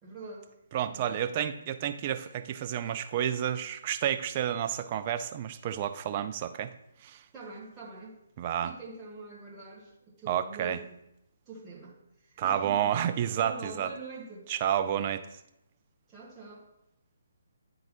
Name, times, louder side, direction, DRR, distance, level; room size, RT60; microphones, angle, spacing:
voice 1, 0.0-0.5 0.9-1.3 7.3-8.2 8.6-11.0 11.5-12.0 12.2-12.9 13.4-14.5 16.1-16.6, right 3 dB, 15° right, -5 dB, 1.5 m, -44 dB
voice 2, 0.7-6.7 7.0-7.2 8.4-8.7 10.3-10.8 12.4-13.9 14.5-15.3, right 10 dB, 30° right, 9 dB, 0.4 m, -30 dB
10.0 x 3.8 x 2.9 m, 0.82 s
figure-of-eight pair, 135°, 0 cm